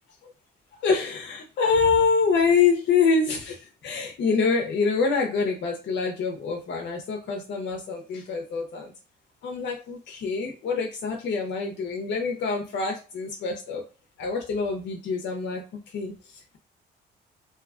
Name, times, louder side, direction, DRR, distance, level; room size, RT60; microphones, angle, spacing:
voice 1, 0.7-8.9 9.4-13.8 14.2-16.6, left 5 dB, 65° left, 2 dB, 0.6 m, -26 dB
2.7 x 2.2 x 2.4 m, 0.33 s
cardioid pair, 90°, 20 cm